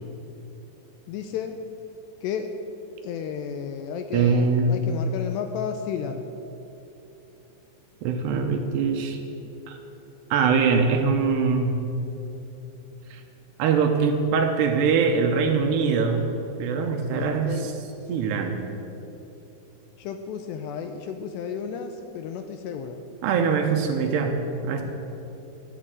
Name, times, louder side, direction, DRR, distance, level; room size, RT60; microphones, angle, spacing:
voice 1, 1.1-1.6 2.2-2.6 3.0-6.3 17.1-17.7 18.0-18.2 20.0-23.0, left 7 dB, 80° left, 7 dB, 2.5 m, -33 dB
voice 2, 4.1-4.8 8.0-9.2 9.7-9.8 10.3-11.8 13.1-13.2 13.6-16.2 16.6-17.5 18.1-18.6 23.2-24.4 24.6-24.8, right 5 dB, 75° right, 4 dB, 2.7 m, -22 dB
12.5 x 8.4 x 8.9 m, 3.0 s
omnidirectional pair, 5.3 m